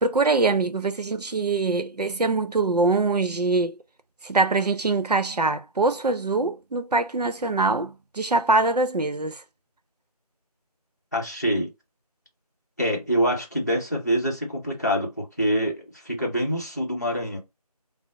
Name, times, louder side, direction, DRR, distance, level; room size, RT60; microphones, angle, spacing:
voice 1, 0.0-3.8 4.2-9.4, right 3 dB, 85° right, 0.7 m, -23 dB
voice 2, 11.1-11.7 12.8-17.4, equal, 25° left, 0.8 m, -25 dB
4.5 x 2.0 x 3.7 m
figure-of-eight pair, 175°, 20 cm